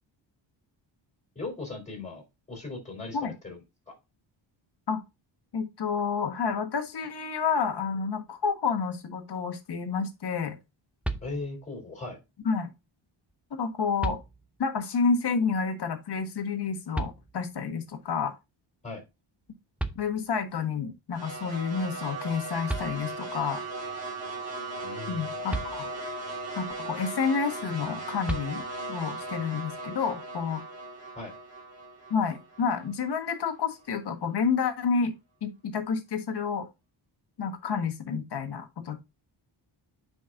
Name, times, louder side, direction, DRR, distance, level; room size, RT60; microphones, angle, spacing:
voice 1, 1.4-3.6 11.2-12.2 18.8-19.0 24.8-25.3 31.1-31.3, left 3 dB, 15° left, 3.9 m, -38 dB
voice 2, 5.5-10.6 12.4-12.7 13.5-14.2 14.6-18.3 19.9-23.6 25.1-25.9 26.6-28.6 28.9-30.6 32.1-35.1 35.4-36.7 37.4-39.0, left 5 dB, 55° left, 1.6 m, -29 dB
sound 1, 11.0-11.8 13.3-13.4 14.0-14.8 16.9-17.7 19.5-19.6 19.8-20.6 22.3-22.4 22.7-23.4 25.5-26.3 28.3-29.0, right 2 dB, 5° right, 0.5 m, -36 dB
sound 2, 21.1-33.4, right 2 dB, 30° right, 3.4 m, -38 dB
9.5 x 5.3 x 2.6 m
wide cardioid pair, 155°, 47 cm